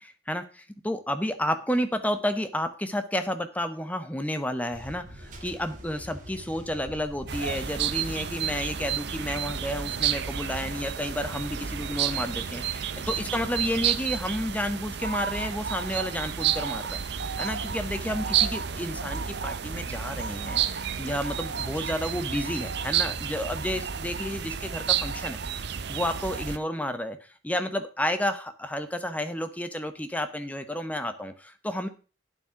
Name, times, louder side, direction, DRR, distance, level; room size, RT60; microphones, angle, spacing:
voice 1, 0.0-17.0 17.4-25.4 25.9-31.9, left 1 dB, 10° left, 10 dB, 0.9 m, -31 dB
sound 1, 4.7-13.9, equal, 40° right, 2.0 m, -47 dB
sound 2, 7.3-26.6, right 8 dB, 55° right, 0.6 m, -31 dB
9.1 x 7.6 x 5.7 m, 0.35 s
head